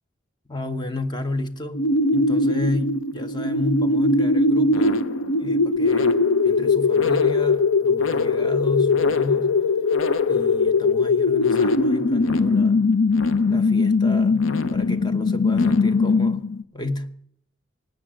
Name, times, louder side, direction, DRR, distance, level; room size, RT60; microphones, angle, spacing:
voice 1, 0.5-5.0 5.4-9.6 10.2-12.9 13.5-16.4 16.7-17.2, left 2 dB, 20° left, 0.9 m, -32 dB
sound 1, 1.7-16.6, left 3 dB, 85° left, 0.7 m, -20 dB
17.5 x 9.2 x 7.6 m
head